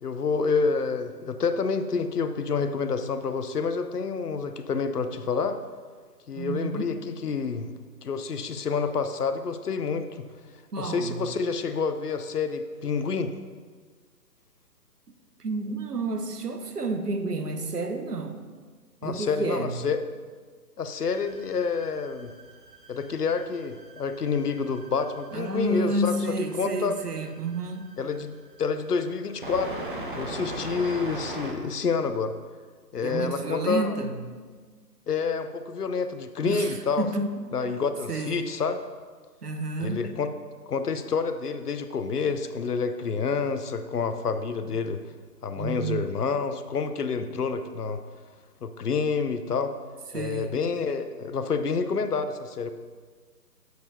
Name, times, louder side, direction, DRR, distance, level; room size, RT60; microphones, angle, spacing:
voice 1, 0.0-5.6 6.3-7.7 8.0-10.3 10.8-13.3 19.0-20.0 20.8-22.3 22.9-26.1 26.5-26.9 28.0-29.7 30.1-32.3 32.9-34.0 35.1-37.1 37.5-38.8 39.8-40.3 40.7-45.0 45.4-48.0 48.6-49.7 50.1-52.7, left 5 dB, 65° left, 9 dB, 0.6 m, -28 dB
voice 2, 6.3-6.9 10.7-11.2 15.4-18.4 19.0-19.8 25.3-27.9 33.0-34.3 36.4-37.5 38.1-38.5 39.4-40.1 45.5-46.0 50.1-50.6, right 2 dB, 70° right, 7 dB, 0.9 m, -30 dB
sound 1, 21.0-31.5, right 1 dB, 30° right, 0.7 m, -40 dB
7.8 x 6.9 x 2.7 m, 1.5 s
figure-of-eight pair, 145°, 50 cm